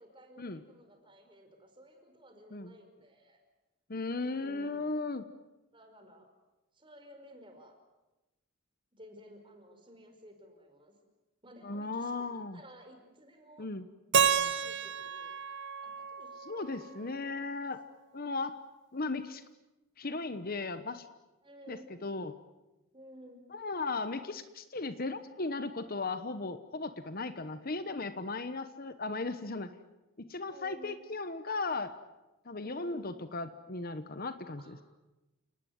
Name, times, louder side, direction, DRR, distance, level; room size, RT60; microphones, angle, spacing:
voice 1, 0.0-3.4 4.4-4.9 5.7-6.3 6.7-7.8 9.0-10.9 11.4-13.7 14.2-15.4 15.8-17.2 21.4-21.9 22.9-23.4 30.5-31.0 32.6-33.1 34.6-34.8, equal, 25° right, 5 dB, 5.1 m, -55 dB
voice 2, 3.9-5.3 11.6-12.6 13.6-13.8 16.5-17.8 18.1-18.6 18.9-19.4 20.0-21.1 21.7-22.3 23.5-29.8 30.2-31.9 32.4-34.8, left 3 dB, 45° left, 11 dB, 1.1 m, -36 dB
Keyboard (musical), 14.1-17.1, right 6 dB, 55° right, 1.1 m, -31 dB
29.5 x 19.0 x 9.5 m, 1.0 s
head